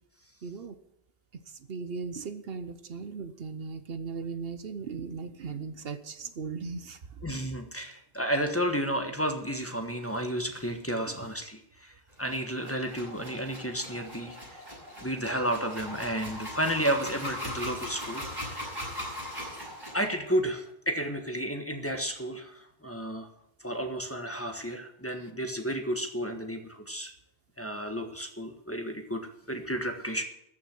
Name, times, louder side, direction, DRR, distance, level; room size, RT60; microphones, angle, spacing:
voice 1, 0.4-0.8 1.5-7.2 11.0-11.1, right 5 dB, 65° right, 1.1 m, -38 dB
voice 2, 7.2-11.9 12.2-14.4 15.0-18.7 19.9-23.3 23.6-27.1 27.6-30.2, equal, 15° left, 1.4 m, -32 dB
sound 1, 12.2-20.1, equal, 20° right, 7.3 m, -39 dB
14.0 x 6.2 x 9.5 m
omnidirectional pair, 1.1 m